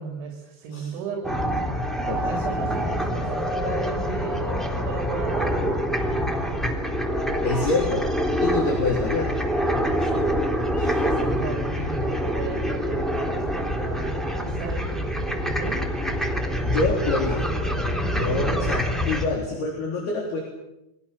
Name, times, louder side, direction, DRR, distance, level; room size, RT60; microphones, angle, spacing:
voice 1, 0.0-1.5 2.1-5.6 9.9-15.8, right 5 dB, 75° right, 3 dB, 5.3 m, -36 dB
sound 1, 1.2-19.3, equal, ahead, 2.3 m, -25 dB
voice 2, 2.1-2.4 7.4-8.0 8.4-9.3 10.8-11.0 16.6-17.5 18.1-20.4, left 3 dB, 55° left, 0 dB, 5.4 m, -26 dB
29.5 x 24.0 x 7.1 m, 0.88 s
omnidirectional pair, 5.6 m